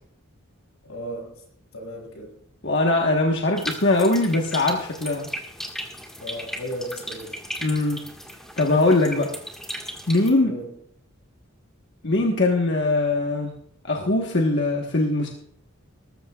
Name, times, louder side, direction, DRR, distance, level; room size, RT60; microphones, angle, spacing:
voice 1, 0.8-1.4 1.7-2.4 6.2-7.4 10.4-10.7, equal, 85° left, 0 dB, 6.4 m, -35 dB
voice 2, 2.6-5.3 7.6-8.0 8.6-9.3 10.1-10.6 12.0-13.5 13.8-15.3, left 2 dB, 55° left, 0 dB, 1.3 m, -21 dB
sound 1, 3.6-10.3, equal, ahead, 1.7 m, -36 dB
20.0 x 13.5 x 2.4 m, 0.66 s
head